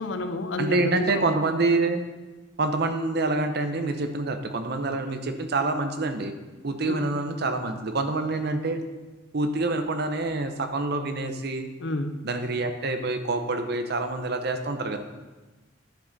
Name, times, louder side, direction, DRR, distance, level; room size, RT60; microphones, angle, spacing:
voice 1, 0.0-1.2 6.9-7.0 11.8-12.2, left 1 dB, 70° left, 8 dB, 0.6 m, -30 dB
voice 2, 0.6-2.0 2.6-6.3 6.6-8.8 9.3-11.7 12.2-15.0, right 2 dB, 60° right, 7 dB, 0.7 m, -26 dB
10.5 x 5.1 x 4.0 m, 1.2 s
head